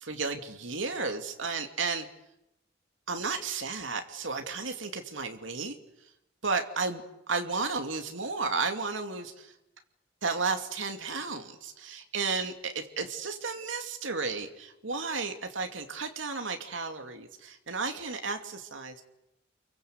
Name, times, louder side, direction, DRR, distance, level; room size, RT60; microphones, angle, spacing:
voice 1, 0.0-2.1 3.1-5.8 6.4-7.0 7.3-9.5 10.2-19.0, right 4 dB, 85° right, 5 dB, 2.5 m, -33 dB
29.5 x 23.5 x 8.0 m, 0.86 s
head